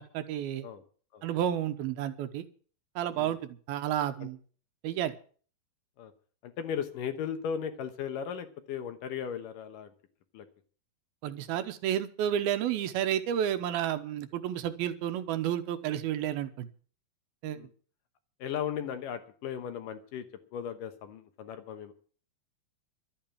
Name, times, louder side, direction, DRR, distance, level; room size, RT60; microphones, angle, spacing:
voice 1, 0.1-0.7 1.2-2.4 3.0-4.4 4.8-5.1 11.2-16.7 17.4-17.6, right 10 dB, 80° right, 10 dB, 2.9 m, -31 dB
voice 2, 6.4-9.9 10.3-10.5 17.5-17.7 18.4-20.3 20.5-21.9, left 8 dB, 70° left, 9 dB, 2.5 m, -36 dB
12.5 x 8.8 x 8.6 m, 0.44 s
omnidirectional pair, 4.4 m